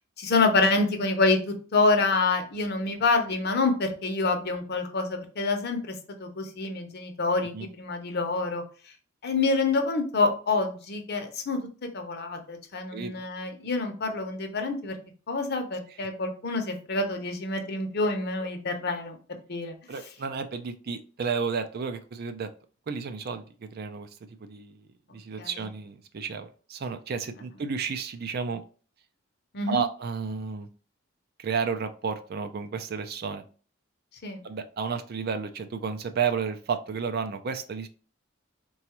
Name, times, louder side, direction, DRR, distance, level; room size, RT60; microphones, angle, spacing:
voice 1, 0.2-8.6 9.2-11.6 11.9-14.9 15.3-19.2 19.5-19.7 25.4-25.5 29.5-29.8 34.2-34.4, left 3 dB, 55° left, 5 dB, 0.7 m, -27 dB
voice 2, 19.9-22.5 22.9-28.6 29.7-30.7 31.4-33.4 34.4-37.9, right 6 dB, 50° right, 8 dB, 0.4 m, -32 dB
4.0 x 2.3 x 2.9 m, 0.38 s
head